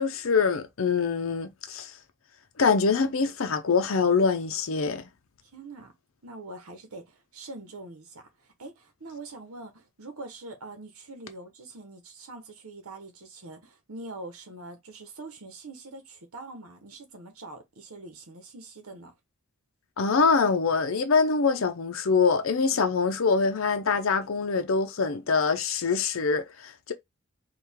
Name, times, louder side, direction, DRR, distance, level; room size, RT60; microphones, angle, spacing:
voice 1, 0.0-1.9 2.6-5.1 20.0-26.9, left 5 dB, 70° left, 0.6 m, -24 dB
voice 2, 5.4-5.9 6.2-19.1, right 2 dB, 85° right, 1.1 m, -44 dB
4.6 x 2.5 x 3.5 m
head